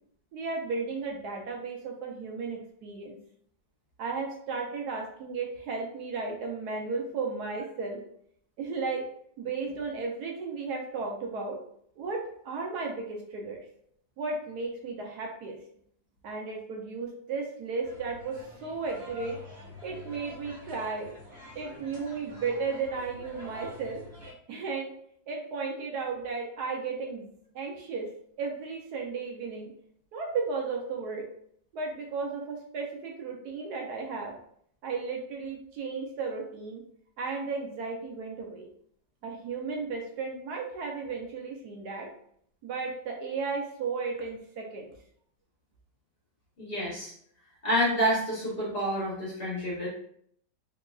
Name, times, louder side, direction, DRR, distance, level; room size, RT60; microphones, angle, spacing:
voice 1, 0.3-3.2 4.0-8.0 8.6-9.1 9.4-11.6 12.0-13.6 14.2-15.6 16.2-19.4 19.8-21.1 21.5-24.0 24.5-24.9 25.3-27.3 27.5-28.1 28.4-29.7 30.1-31.3 31.7-34.3 34.8-36.8 37.2-38.7 39.2-42.1 42.6-44.9, right 4 dB, 70° right, 1 dB, 1.1 m, -34 dB
sound 1, 17.8-24.3, left 1 dB, 40° right, 1.1 m, -47 dB
voice 2, 46.6-47.1 47.6-49.9, equal, 40° left, -6 dB, 1.0 m, -28 dB
3.7 x 2.8 x 2.3 m, 0.65 s
omnidirectional pair, 2.0 m